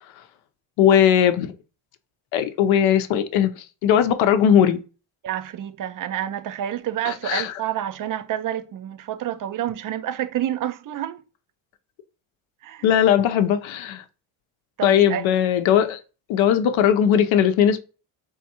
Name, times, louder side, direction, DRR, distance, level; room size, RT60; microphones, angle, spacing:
voice 1, 0.8-1.5 2.3-4.8 7.1-7.6 12.8-14.0 14.8-16.0 16.3-17.8, left 9 dB, 70° left, 0.7 m, -19 dB
voice 2, 5.2-11.2 12.6-12.9 14.8-15.3, right 11 dB, 40° right, 0.5 m, -28 dB
3.5 x 3.4 x 2.8 m
supercardioid pair, 75°, 49 cm